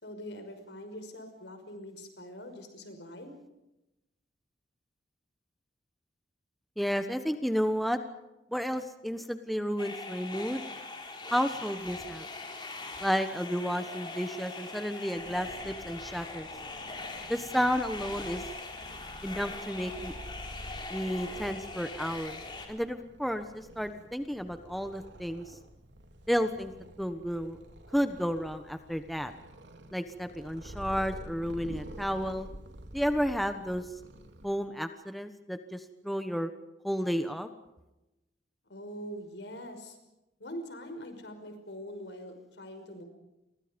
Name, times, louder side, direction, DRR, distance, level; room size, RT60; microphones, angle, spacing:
voice 1, 0.0-3.3 38.6-40.0 40.4-43.0, equal, 75° left, 7 dB, 5.7 m, -43 dB
voice 2, 6.8-8.0 8.5-10.6 11.3-12.2 13.0-16.5 17.3-18.4 19.2-20.1 20.9-22.4 22.7-25.6 26.3-26.7 27.0-27.6 27.9-29.3 29.9-32.5 32.9-33.8 34.4-36.5 36.8-37.5, equal, ahead, 8 dB, 1.2 m, -32 dB
sound 1, 9.8-22.7, left 3 dB, 25° left, 4.2 m, -41 dB
Purr, 15.1-34.5, equal, 80° right, 3.1 m, -48 dB
29.5 x 24.0 x 5.3 m, 0.96 s
head